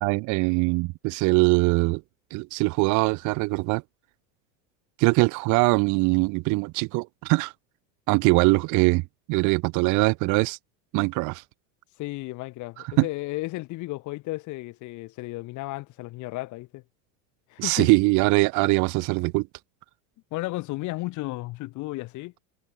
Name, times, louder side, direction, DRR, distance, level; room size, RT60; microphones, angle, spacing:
voice 1, 0.0-2.0 2.3-3.8 5.0-7.5 8.1-9.0 9.3-10.6 10.9-11.4 13.0-13.1 17.6-19.5, right 26 dB, 50° right, 0.9 m, -22 dB
voice 2, 12.0-16.8 17.5-18.0 20.3-22.3, left 20 dB, 50° left, 2.2 m, -34 dB
supercardioid pair, 135°, 39 cm